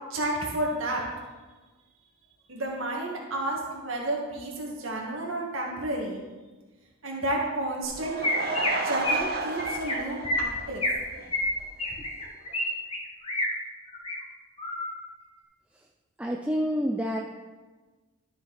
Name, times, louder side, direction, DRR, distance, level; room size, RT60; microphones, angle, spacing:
voice 1, 0.1-1.0 2.5-6.2 7.0-8.2 8.8-10.8, right 1 dB, 75° right, -2 dB, 1.9 m, -31 dB
Chirp tweet, 7.8-7.9 8.2-8.7 9.0-9.3 9.6-9.9 10.2-11.0 11.3-12.6 12.9-13.5 13.9-14.2 14.6-14.9, left 1 dB, 25° left, 1.5 m, -28 dB
Laughter / Crowd, 7.8-11.3 11.6-11.7 12.2-12.3 12.5-12.6, right 3 dB, 45° right, 0.7 m, -32 dB
voice 2, 16.2-17.2, equal, 5° right, 0 dB, 0.4 m, -28 dB
13.0 x 5.8 x 4.1 m, 1.3 s
head